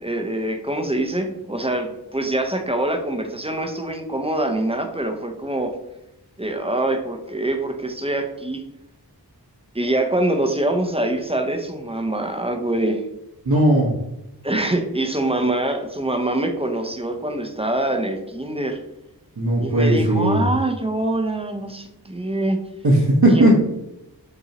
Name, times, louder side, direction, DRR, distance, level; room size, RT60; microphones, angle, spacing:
voice 1, 0.0-5.8 6.4-8.6 9.7-13.0 14.4-18.8 19.6-22.6 23.3-23.4, right 1 dB, 15° right, 4 dB, 0.6 m, -24 dB
voice 2, 13.5-13.9 19.4-20.5 22.8-23.6, right 1 dB, 65° right, -6 dB, 1.0 m, -16 dB
6.8 x 2.7 x 2.9 m, 0.87 s
wide cardioid pair, 50°, 40 cm